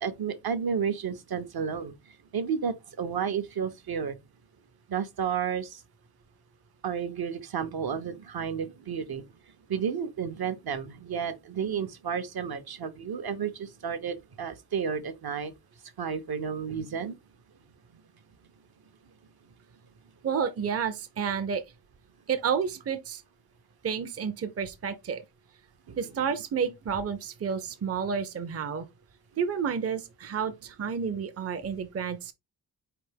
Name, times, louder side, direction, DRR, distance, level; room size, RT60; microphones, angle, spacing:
voice 1, 0.0-1.9 2.3-4.2 4.9-5.8 6.8-9.2 9.7-15.5 16.0-17.2 25.9-26.0, right 7 dB, 65° right, 0.8 m, -32 dB
voice 2, 20.2-21.6 22.3-23.2 23.8-25.2 26.0-28.9 29.4-32.3, right 7 dB, 40° right, 0.5 m, -30 dB
4.5 x 3.4 x 3.3 m
wide cardioid pair, 120°, 40 cm